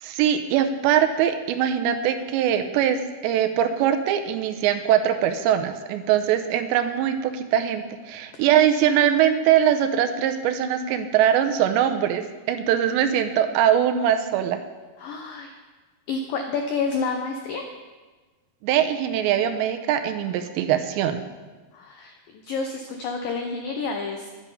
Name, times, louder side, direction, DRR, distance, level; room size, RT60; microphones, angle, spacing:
voice 1, 0.0-14.6 18.6-21.2, right 10 dB, 85° right, 7 dB, 2.9 m, -22 dB
voice 2, 15.0-15.5 16.1-17.6 21.7-24.3, left 4 dB, 85° left, 3 dB, 2.0 m, -29 dB
11.5 x 10.0 x 5.5 m, 1.3 s
omnidirectional pair, 5.2 m